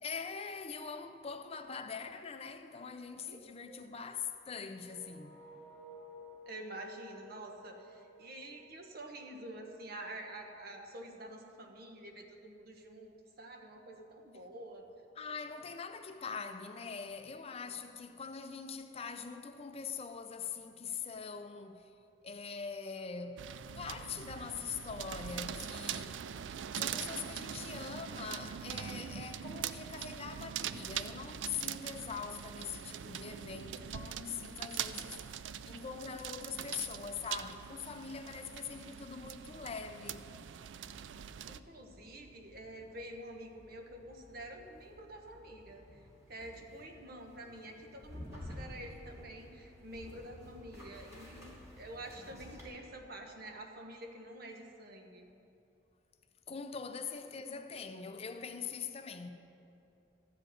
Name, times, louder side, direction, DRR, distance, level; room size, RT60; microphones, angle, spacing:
voice 1, 0.0-5.4 15.2-21.9 22.2-23.5 23.7-26.2 26.7-40.2 56.5-59.3, left 6 dB, 35° left, 0.5 m, -43 dB
voice 2, 3.3-3.8 6.4-14.9 41.5-46.0 46.3-55.3 57.0-57.1, right 1 dB, 55° right, 1.3 m, -48 dB
sound 1, 4.8-9.6, equal, ahead, 2.2 m, -55 dB
sound 2, 23.4-41.6, right 9 dB, 90° right, 0.4 m, -42 dB
sound 3, 39.2-52.7, left 1 dB, 15° right, 3.0 m, -53 dB
13.5 x 5.1 x 9.1 m
head